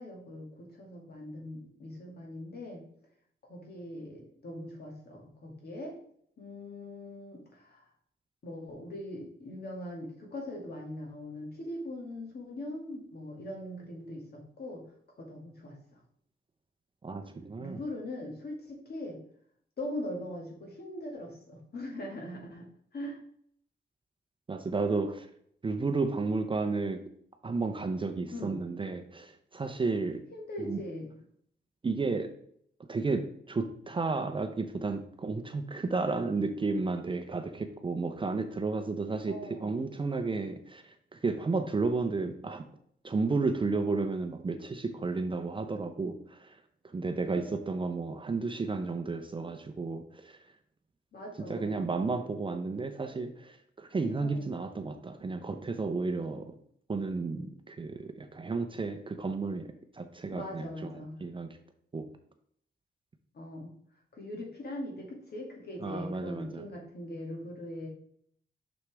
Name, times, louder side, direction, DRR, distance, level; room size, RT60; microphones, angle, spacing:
voice 1, 0.0-2.9 3.4-6.0 6.4-7.8 8.4-14.8 15.2-15.8 17.6-19.2 19.8-23.2 28.3-28.6 30.3-31.1 39.3-39.8 47.3-47.8 51.1-51.8 54.2-54.5 60.3-61.2 63.3-63.7 64.1-67.9, left 1 dB, 60° left, -1 dB, 2.0 m, -41 dB
voice 2, 17.0-17.8 24.5-25.3 25.6-27.0 27.4-30.2 30.6-30.8 31.8-32.3 32.9-42.6 43.0-46.6 46.9-50.4 51.5-56.5 56.9-59.7 59.9-61.5 61.9-62.1 65.8-66.6, right 3 dB, 25° right, 7 dB, 0.6 m, -32 dB
6.5 x 6.1 x 3.3 m, 0.66 s
wide cardioid pair, 155°, 19 cm